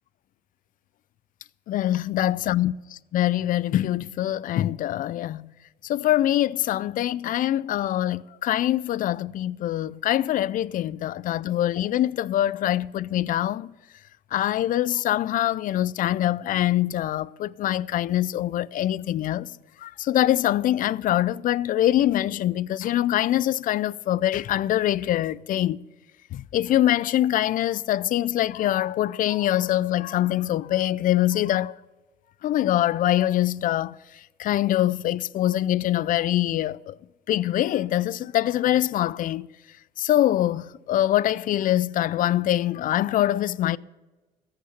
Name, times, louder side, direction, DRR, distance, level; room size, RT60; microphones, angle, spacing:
voice 1, 1.7-2.7 3.1-5.5 5.8-13.7 14.3-19.5 19.8-25.8 26.3-31.7 32.4-34.0 34.4-37.0 37.3-39.5 40.0-43.8, left 13 dB, 55° left, 0.4 m, -24 dB
15.0 x 6.6 x 7.9 m
cardioid pair, 110°, 17 cm